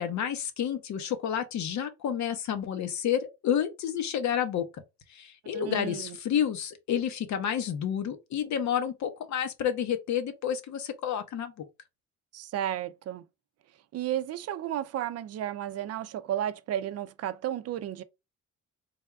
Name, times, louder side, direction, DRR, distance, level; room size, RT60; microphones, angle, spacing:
voice 1, 0.0-4.7 5.1-11.5, left 9 dB, 65° left, 0.8 m, -30 dB
voice 2, 5.5-6.2 12.3-13.2 13.9-18.0, right 11 dB, 55° right, 0.4 m, -33 dB
3.4 x 2.3 x 3.4 m
cardioid pair, 90°, 30 cm